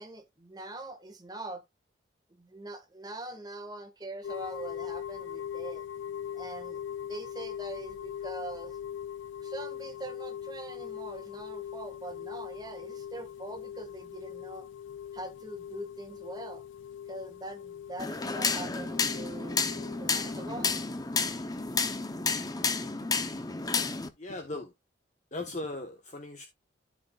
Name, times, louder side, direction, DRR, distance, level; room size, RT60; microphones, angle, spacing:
voice 1, 0.0-1.6 2.3-5.8 6.3-6.8 7.1-8.8 9.4-14.7 15.1-16.6 17.1-19.6 20.0-20.8, right 2 dB, 20° right, 1.6 m, -42 dB
sound 1, 4.2-21.9, left 9 dB, 80° left, 0.5 m, -41 dB
sound 2, 18.0-24.1, left 4 dB, 20° left, 0.7 m, -31 dB
voice 2, 24.2-24.7 25.3-26.5, left 2 dB, 40° left, 1.2 m, -38 dB
13.5 x 5.1 x 2.4 m
head